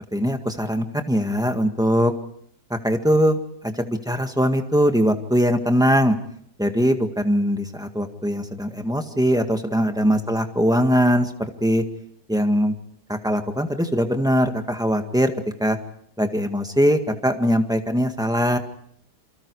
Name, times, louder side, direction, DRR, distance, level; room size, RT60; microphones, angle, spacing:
voice 1, 0.1-2.1 2.8-3.4 3.6-6.2 6.6-11.3 11.6-11.8 12.3-12.7 13.1-15.3 15.6-15.8 16.2-18.6, equal, ahead, 5 dB, 1.7 m, -21 dB
29.0 x 24.0 x 4.8 m, 0.66 s
omnidirectional pair, 1.8 m